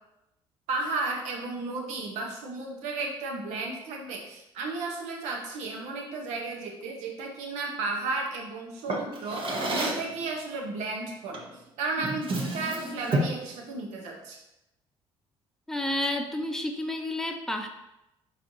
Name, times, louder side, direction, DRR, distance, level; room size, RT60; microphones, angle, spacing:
voice 1, 0.7-11.5 11.8-14.4, right 3 dB, 80° right, 1 dB, 0.9 m, -34 dB
Drawer open or close, 8.9-10.1 11.3-11.6 12.0-13.5, right 1 dB, 45° right, 0.9 m, -30 dB
voice 2, 15.7-17.7, left 1 dB, 5° left, 4 dB, 0.6 m, -30 dB
4.4 x 4.0 x 2.7 m, 0.90 s
supercardioid pair, 70°, 12 cm